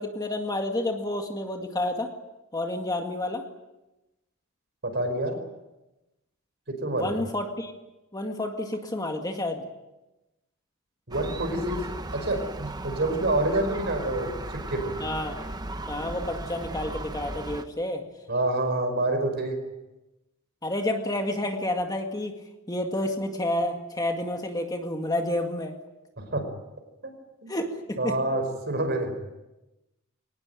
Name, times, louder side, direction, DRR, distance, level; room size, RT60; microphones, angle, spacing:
voice 1, 0.0-2.1 2.5-3.4 6.9-7.7 8.1-9.6 15.0-15.4 15.9-18.0 20.6-22.4 22.7-25.8 27.5-28.2, left 1 dB, 20° left, 4 dB, 2.0 m, -29 dB
voice 2, 4.8-5.4 6.7-7.1 11.1-11.8 12.1-14.9 18.3-19.6 26.2-26.5 27.0-27.1 27.4-27.5 28.0-29.1, right 2 dB, 50° right, 7 dB, 5.2 m, -27 dB
Gull seagull, 11.1-17.7, right 2 dB, 20° right, 1.0 m, -36 dB
23.5 x 19.0 x 9.2 m, 1.0 s
head